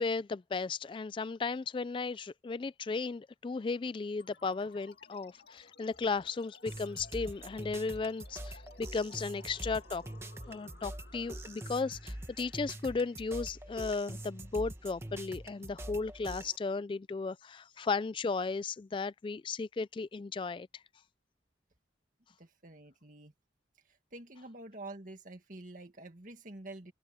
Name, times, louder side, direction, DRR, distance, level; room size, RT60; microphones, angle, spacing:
voice 1, 0.0-10.0 10.5-20.8, left 4 dB, 30° left, 0.3 m, -35 dB
sound 1, 4.2-15.1, left 4 dB, 60° left, 2.2 m, -59 dB
sound 2, 6.7-16.6, right 1 dB, 15° right, 1.3 m, -44 dB
voice 2, 22.4-23.3 23.8-26.9, right 2 dB, 45° right, 2.0 m, -48 dB
open air
head